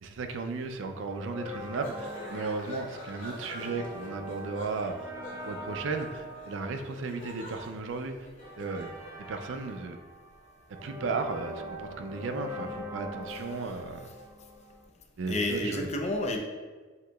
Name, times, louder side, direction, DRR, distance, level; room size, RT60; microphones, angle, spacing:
voice 1, 0.0-5.1 5.5-8.2 8.6-9.0 9.3-10.0 10.7-14.1 15.2-15.9, right 4 dB, 75° right, 7 dB, 0.4 m, -35 dB
sound 1, 1.1-14.9, left 1 dB, 15° right, 0.5 m, -43 dB
sound 2, 1.5-9.0, left 1 dB, 90° left, 1.2 m, -46 dB
voice 2, 13.3-14.1 15.3-16.4, left 1 dB, 35° left, 3 dB, 0.5 m, -32 dB
7.6 x 2.8 x 2.3 m, 1.4 s
head